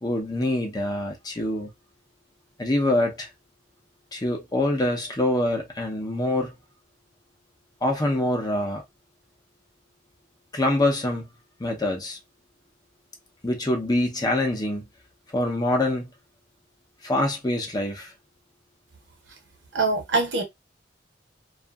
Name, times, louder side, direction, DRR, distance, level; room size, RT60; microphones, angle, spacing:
voice 1, 0.0-1.7 2.6-3.3 4.1-6.5 7.8-8.8 10.5-11.3 11.6-12.2 13.4-14.8 15.3-16.1 17.0-18.1, left 1 dB, 20° left, 0.7 m, -25 dB
voice 2, 19.7-20.4, right 3 dB, 70° right, 0.9 m, -23 dB
2.6 x 2.4 x 2.3 m
head